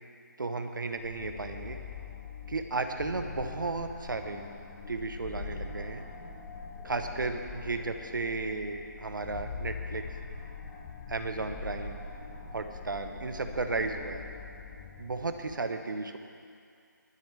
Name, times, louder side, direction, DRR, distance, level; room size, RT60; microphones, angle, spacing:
voice 1, 0.4-1.8 2.5-4.4 4.9-6.0 6.8-10.1 11.1-12.0 12.5-14.2 15.0-16.2, right 3 dB, 80° right, 6 dB, 1.1 m, -34 dB
sound 1, 1.0-15.5, left 5 dB, 10° left, 0.3 m, -43 dB
21.5 x 10.0 x 3.5 m, 2.3 s
hypercardioid pair, 165°, 10 cm